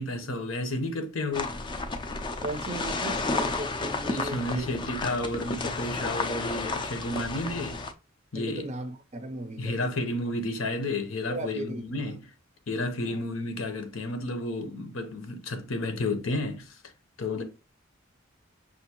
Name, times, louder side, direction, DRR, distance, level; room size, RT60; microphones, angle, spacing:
voice 1, 0.0-1.6 4.1-7.8 8.3-8.7 9.6-12.2 12.7-16.8 17.2-17.4, left 2 dB, 85° left, 0.9 m, -31 dB
sound 1, 1.3-7.9, left 3 dB, 25° left, 0.4 m, -32 dB
voice 2, 2.4-4.7 8.4-10.0 11.3-11.8 13.0-13.2, right 1 dB, 35° right, 0.5 m, -37 dB
5.7 x 2.6 x 2.9 m
head